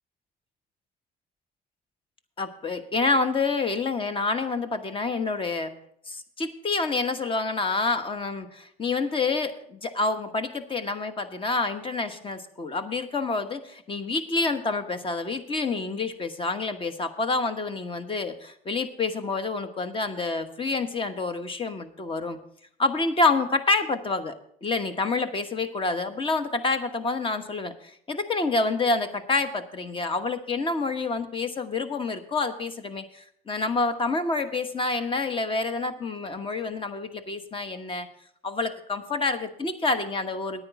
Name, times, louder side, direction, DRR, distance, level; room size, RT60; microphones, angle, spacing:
voice 1, 2.4-5.7 6.1-22.4 22.8-38.1 38.4-40.6, left 3 dB, 30° left, 10 dB, 1.1 m, -28 dB
9.7 x 9.4 x 5.8 m, 0.68 s
cardioid pair, 110°, 17 cm